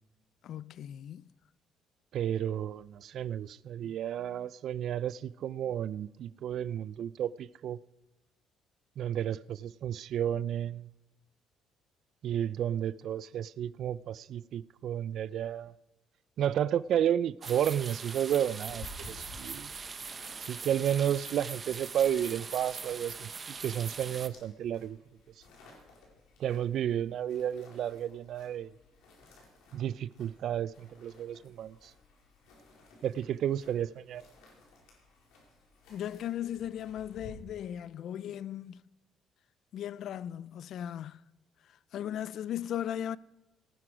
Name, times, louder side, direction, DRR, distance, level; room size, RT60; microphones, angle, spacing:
voice 1, 0.4-1.3 3.8-4.0 35.9-38.8 39.7-41.2 41.6-43.2, left 10 dB, 65° left, 0.4 m, -37 dB
voice 2, 2.1-7.8 9.0-10.9 12.2-15.7 16.4-19.7 20.5-25.0 26.4-28.7 29.7-31.9 33.0-34.2, right 10 dB, 65° right, 0.4 m, -32 dB
sound 1, 17.4-24.3, right 5 dB, 35° right, 0.9 m, -42 dB
sound 2, 18.6-37.3, left 3 dB, 85° left, 4.2 m, -56 dB
18.5 x 9.9 x 4.9 m
cardioid pair, 85°, 0 cm